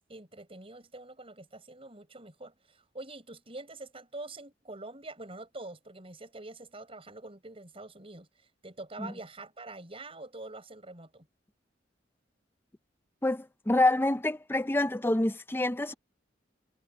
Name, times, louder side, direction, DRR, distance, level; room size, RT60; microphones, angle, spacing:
voice 1, 0.0-8.3 8.6-11.3, right 2 dB, 30° right, 6.3 m, -45 dB
voice 2, 13.2-15.9, left 2 dB, 10° left, 0.6 m, -27 dB
head